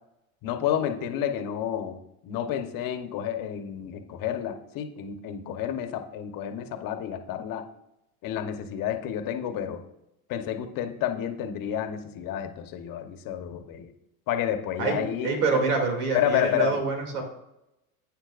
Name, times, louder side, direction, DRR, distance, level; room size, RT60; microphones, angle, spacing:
voice 1, 0.4-7.6 8.2-9.8 10.3-13.9 14.3-15.6 16.1-16.8, left 10 dB, 50° left, 7 dB, 1.3 m, -30 dB
voice 2, 14.8-17.2, right 4 dB, 85° right, 2 dB, 2.9 m, -26 dB
11.5 x 8.9 x 2.6 m, 0.87 s
supercardioid pair, 100°, 43 cm